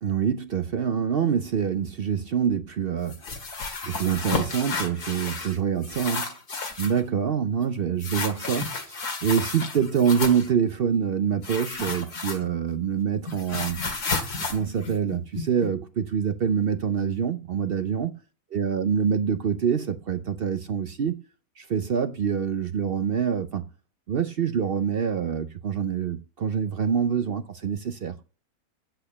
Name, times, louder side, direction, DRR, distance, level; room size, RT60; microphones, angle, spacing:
voice 1, 0.0-3.2 3.8-6.3 6.8-13.8 14.5-18.1 18.5-21.2 21.6-23.6 24.1-28.1, right 7 dB, 60° right, 0.6 m, -26 dB
sound 1, 3.1-5.6 5.8-7.0 8.0-10.5 11.4-12.7 13.0-15.7, left 4 dB, 80° left, 2.5 m, -32 dB
8.6 x 7.9 x 6.9 m
omnidirectional pair, 1.6 m